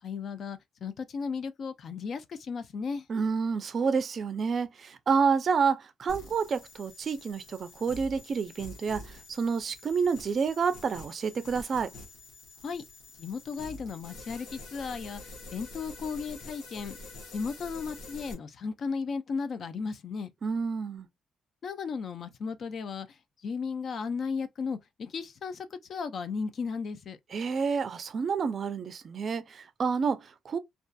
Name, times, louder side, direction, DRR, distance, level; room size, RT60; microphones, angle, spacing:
voice 1, 0.0-3.1 12.6-12.8 13.2-17.0 17.3-20.3 21.6-27.2, left 5 dB, 55° left, 0.4 m, -35 dB
voice 2, 3.1-11.9 20.4-21.1 27.3-30.6, right 5 dB, 50° right, 0.4 m, -29 dB
sound 1, 6.1-18.3, left 2 dB, 80° left, 0.9 m, -47 dB
2.5 x 2.3 x 2.2 m
cardioid pair, 90°, 0 cm